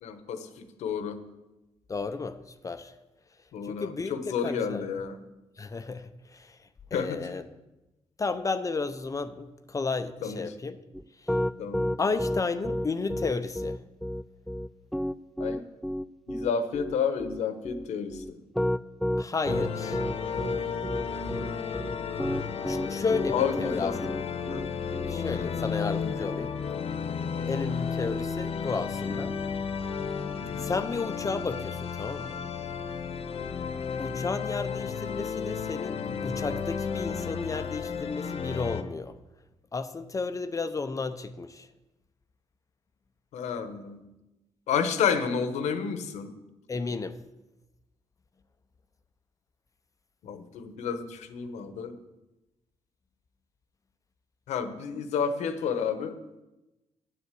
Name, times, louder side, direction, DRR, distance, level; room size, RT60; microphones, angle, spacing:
voice 1, 0.0-1.2 3.5-5.2 6.9-7.3 10.2-10.5 11.6-11.9 15.4-15.6 16.3-18.4 23.3-24.0 24.5-24.7 27.3-27.6 30.4-30.6 43.3-44.0 44.7-46.3 50.2-51.9 54.5-56.2, left 6 dB, 90° left, 9 dB, 1.2 m, -30 dB
voice 2, 1.9-2.4 2.6-2.9 3.6-4.8 5.6-6.6 6.9-7.4 8.2-10.8 11.2-11.3 12.0-13.8 19.2-20.0 22.6-23.9 25.1-26.6 27.5-29.4 30.6-32.4 34.0-39.2 39.7-41.7 46.7-47.2, left 4 dB, 30° left, 10 dB, 0.7 m, -32 dB
Piano, 10.9-25.1, equal, ahead, 0.3 m, -31 dB
sound 1, 19.4-38.8, left 6 dB, 60° left, 1.0 m, -33 dB
9.6 x 7.9 x 8.3 m, 1.0 s
cardioid pair, 100°, 11 cm